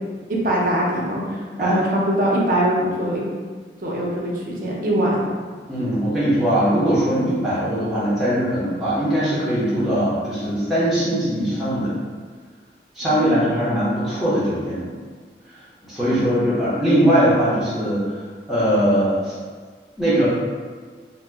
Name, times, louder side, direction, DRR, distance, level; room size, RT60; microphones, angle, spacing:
voice 1, 0.3-3.2 3.8-5.3 13.0-13.6 16.0-16.3, right 1 dB, 50° right, -3 dB, 0.6 m, -22 dB
voice 2, 5.7-11.9 12.9-14.9 15.8-18.2 18.5-19.4 20.0-20.3, equal, ahead, -11 dB, 0.7 m, -20 dB
2.8 x 2.1 x 3.3 m, 1.5 s
head